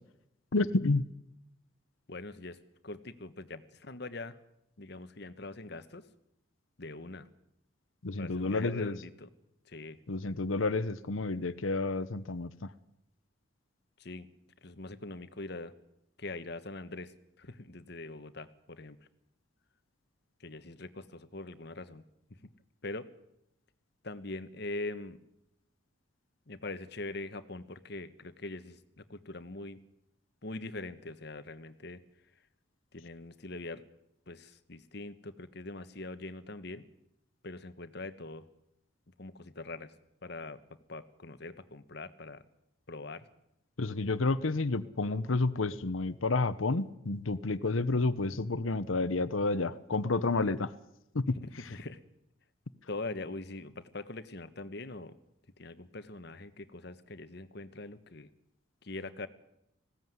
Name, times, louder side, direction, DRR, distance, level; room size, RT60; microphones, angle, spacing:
voice 1, 0.5-1.0 8.0-8.9 10.1-12.7 43.8-50.7 51.1-51.4, left 3 dB, 90° left, 15 dB, 0.9 m, -30 dB
voice 2, 2.1-2.6 2.8-4.4 4.8-6.0 6.8-7.3 8.2-9.3 9.7-10.0 14.0-14.3 14.6-15.7 16.2-19.0 20.4-22.0 22.4-22.5 22.8-23.1 24.0-25.2 26.5-29.8 30.4-32.0 32.9-33.8 34.3-36.8 37.4-38.5 39.2-39.9 40.2-40.6 40.9-42.4 42.9-43.3 51.3-52.0 52.9-55.2 55.6-58.3 58.8-59.3, left 2 dB, 55° left, 12 dB, 1.3 m, -42 dB
19.5 x 16.5 x 9.5 m, 0.82 s
head